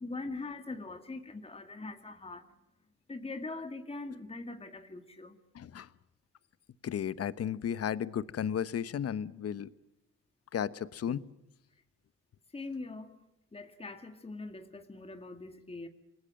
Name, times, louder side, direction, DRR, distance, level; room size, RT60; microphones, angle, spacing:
voice 1, 0.0-2.4 3.1-5.3 12.5-13.1 13.5-15.9, left 3 dB, 20° left, 7 dB, 2.1 m, -42 dB
voice 2, 5.5-5.9 6.8-9.7 10.5-11.2, left 9 dB, 50° left, 16 dB, 1.1 m, -34 dB
28.0 x 20.0 x 7.8 m, 0.86 s
cardioid pair, 90°, 30 cm